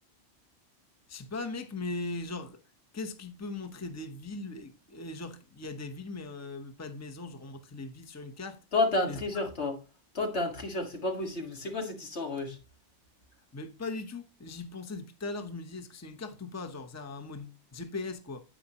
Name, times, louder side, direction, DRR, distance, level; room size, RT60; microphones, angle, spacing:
voice 1, 1.1-2.6 2.9-8.6 9.1-9.2 13.5-18.4, left 3 dB, 15° left, 0.9 m, -39 dB
voice 2, 8.7-9.8 10.1-12.6, left 2 dB, 75° left, 2.1 m, -30 dB
10.0 x 8.7 x 2.9 m
omnidirectional pair, 1.1 m